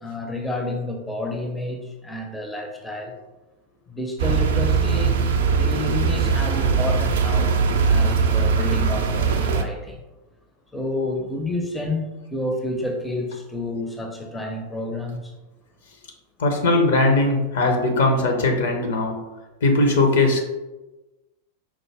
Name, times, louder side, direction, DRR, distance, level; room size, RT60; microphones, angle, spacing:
voice 1, 0.0-3.2 3.9-5.2 5.5-7.5 7.9-10.0 10.7-15.3, left 1 dB, 5° left, 2 dB, 0.5 m, -30 dB
sound 1, 4.2-9.6, right 5 dB, 60° right, 0.3 m, -20 dB
voice 2, 16.4-19.2 19.6-20.5, left 2 dB, 60° left, 2 dB, 0.7 m, -19 dB
4.7 x 2.0 x 3.3 m, 1.1 s
figure-of-eight pair, 90°, 0 cm